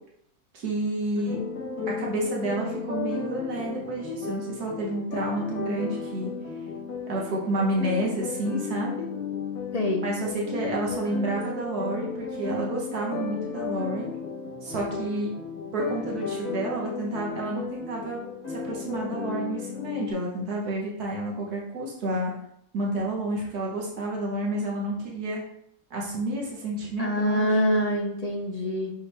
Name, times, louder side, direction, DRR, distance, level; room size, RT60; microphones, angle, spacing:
voice 1, 0.5-1.4 2.0-6.3 7.1-9.1 10.0-14.1 14.6-15.3 15.7-18.2 18.5-22.3 22.7-25.4 25.9-27.5, right 1 dB, 85° right, -2 dB, 1.8 m, -30 dB
sound 1, 1.3-20.1, left 5 dB, 85° left, 1.8 m, -34 dB
voice 2, 9.7-10.0 27.0-28.9, equal, 35° left, 1 dB, 0.7 m, -25 dB
6.1 x 5.5 x 3.4 m, 0.72 s
omnidirectional pair, 1.6 m